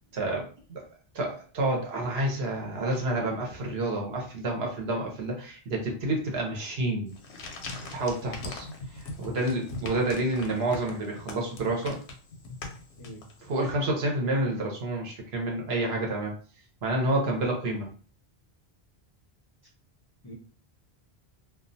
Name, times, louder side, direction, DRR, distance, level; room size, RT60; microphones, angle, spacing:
voice 1, 0.1-0.8 1.1-7.1 7.9-12.0 13.4-16.3 16.8-17.9, right 1 dB, 75° right, 0 dB, 1.0 m, -29 dB
sound 1, 7.1-13.6, left 3 dB, 85° left, 0.8 m, -41 dB
voice 2, 8.1-8.3 13.0-13.2 20.2-20.3, equal, 30° left, -4 dB, 0.5 m, -46 dB
2.4 x 2.2 x 2.6 m, 0.42 s
omnidirectional pair, 1.1 m